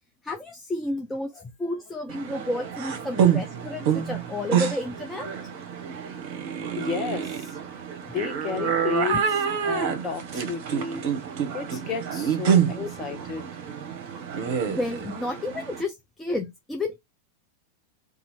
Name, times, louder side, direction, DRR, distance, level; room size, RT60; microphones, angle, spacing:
voice 1, 0.2-5.3 9.1-9.2 12.7-12.9 14.7-17.0, left 2 dB, 10° left, 0.5 m, -31 dB
sound 1, 2.1-15.8, right 8 dB, 50° right, 0.8 m, -27 dB
voice 2, 6.8-7.6 8.1-9.2 9.6-11.1 11.5-13.4, left 6 dB, 30° left, 0.9 m, -32 dB
2.7 x 2.5 x 4.2 m
figure-of-eight pair, 90°, 0 cm